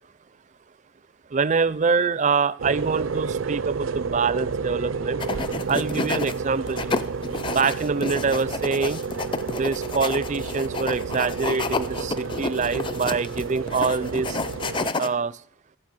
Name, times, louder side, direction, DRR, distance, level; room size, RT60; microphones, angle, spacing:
voice 1, 1.3-5.2 5.7-7.0 7.5-9.0 9.5-14.4 15.0-15.4, right 5 dB, 35° right, 18 dB, 0.4 m, -25 dB
sound 1, 2.6-14.9, right 5 dB, 75° right, 0.6 m, -31 dB
sound 2, 5.2-6.3 6.7-15.1, left 3 dB, 25° left, 0.5 m, -30 dB
15.0 x 5.8 x 8.9 m, 0.66 s
head